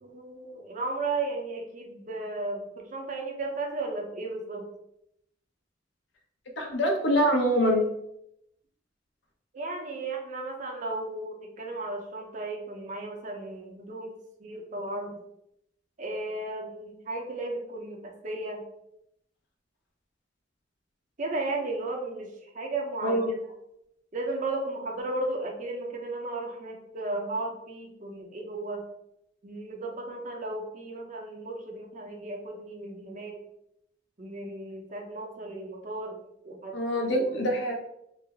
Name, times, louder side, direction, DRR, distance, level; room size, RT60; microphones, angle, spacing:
voice 1, 0.0-4.6 9.5-15.2 16.0-18.6 21.2-23.4 24.1-28.8 29.4-33.4 34.2-36.2 36.4-36.8 37.0-37.4, right 2 dB, 40° right, 1 dB, 0.6 m, -35 dB
voice 2, 6.6-7.9 23.0-23.3 36.7-37.8, equal, 65° left, 1 dB, 0.7 m, -24 dB
3.2 x 2.0 x 3.4 m, 0.79 s
head